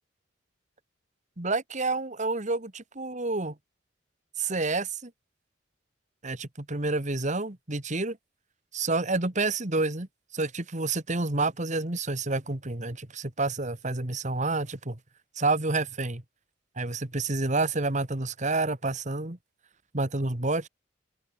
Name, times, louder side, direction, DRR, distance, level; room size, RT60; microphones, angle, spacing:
voice 1, 1.4-3.6 4.4-5.1 6.2-8.2 8.7-10.1 10.3-15.0 15.4-16.2 16.8-19.4 19.9-20.7, right 3 dB, 40° right, 2.0 m, -29 dB
head